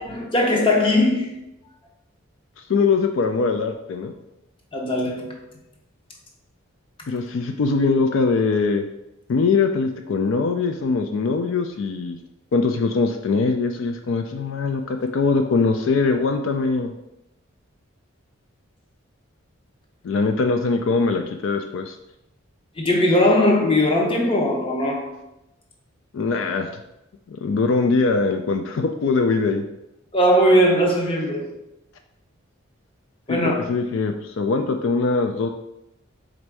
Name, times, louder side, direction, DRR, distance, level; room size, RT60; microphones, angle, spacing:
voice 1, 0.0-1.4 4.7-5.4 22.8-25.1 30.1-31.5 33.3-33.7, left 1 dB, 25° left, 0.7 m, -19 dB
voice 2, 2.7-4.1 7.1-8.8 9.3-12.2 12.5-16.9 20.0-21.9 26.1-26.7 27.3-29.6 33.3-35.5, left 4 dB, 70° left, 0.3 m, -22 dB
4.2 x 2.6 x 4.6 m
head